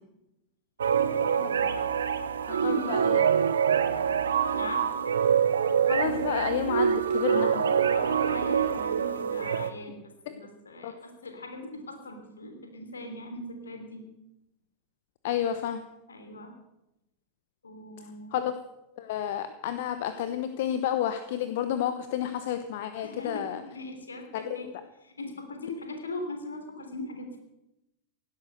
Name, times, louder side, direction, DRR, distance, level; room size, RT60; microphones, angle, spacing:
sound 1, 0.8-9.7, right 7 dB, 65° right, 1.0 m, -25 dB
voice 1, 1.4-1.8 2.5-3.3 5.8-7.5 10.8-10.9 15.2-15.8 18.3-18.5 19.0-23.6 24.3-24.6, left 10 dB, 55° left, 10 dB, 1.0 m, -31 dB
voice 2, 2.4-3.2 4.5-4.9 7.3-9.9 10.3-14.0 16.1-16.5 17.6-18.4 23.0-24.7 25.0-27.4, left 2 dB, 75° left, 5 dB, 3.4 m, -40 dB
17.0 x 11.5 x 6.6 m, 0.90 s
figure-of-eight pair, 90°, 0 cm